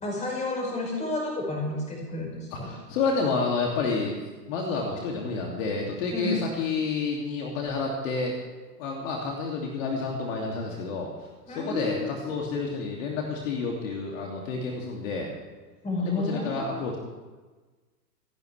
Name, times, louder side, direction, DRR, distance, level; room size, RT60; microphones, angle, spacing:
voice 1, 0.0-2.7 6.1-6.4 11.5-12.1 15.8-16.8, left 2 dB, 15° left, -2 dB, 5.6 m, -31 dB
voice 2, 2.5-8.4 8.8-11.1 11.5-15.3 16.0-17.0, left 4 dB, 50° left, -1 dB, 2.7 m, -29 dB
26.5 x 11.0 x 3.4 m, 1.3 s
hypercardioid pair, 120°, 49 cm